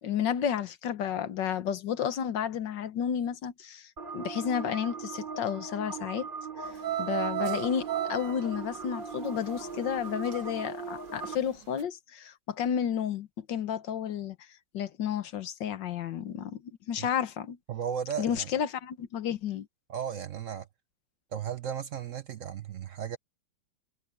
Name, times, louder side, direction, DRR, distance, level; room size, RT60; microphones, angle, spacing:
voice 1, 0.0-6.3 6.6-6.7 7.0-14.4 14.7-17.6 18.2-19.7, left 8 dB, 80° left, 1.8 m, -32 dB
sound 1, 4.0-11.4, right 5 dB, 30° right, 2.8 m, -39 dB
sound 2, 6.7-10.6 10.9-11.4 11.8-11.9, right 13 dB, 90° right, 2.0 m, -34 dB
voice 2, 17.7-18.5 19.9-20.7 21.3-23.2, right 8 dB, 55° right, 0.9 m, -35 dB
omnidirectional pair, 1.9 m